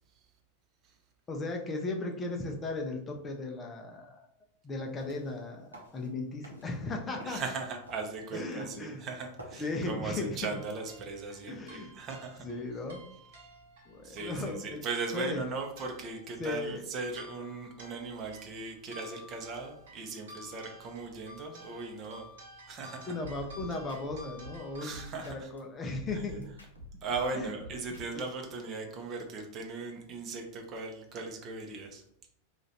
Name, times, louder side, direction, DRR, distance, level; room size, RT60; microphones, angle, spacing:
voice 1, 1.3-4.2 4.6-7.4 8.3-9.0 9.6-10.6 11.5-11.9 12.4-13.1 13.9-14.8 15.1-15.4 16.4-16.9 23.1-26.5 27.3-27.5, left 2 dB, 20° left, 2 dB, 0.6 m, -36 dB
sound 1, 4.8-9.8, right 1 dB, 80° right, 1.0 m, -53 dB
voice 2, 7.2-12.5 14.0-22.3 22.7-23.1 24.8-25.5 27.0-32.0, right 4 dB, 35° right, 2 dB, 0.8 m, -38 dB
sound 2, 10.4-25.0, equal, 60° right, 0.9 m, -53 dB
sound 3, 23.2-25.6 25.9-28.3, equal, 80° left, 0.9 m, -48 dB
3.0 x 2.5 x 4.1 m, 0.73 s
figure-of-eight pair, 90°, 0 cm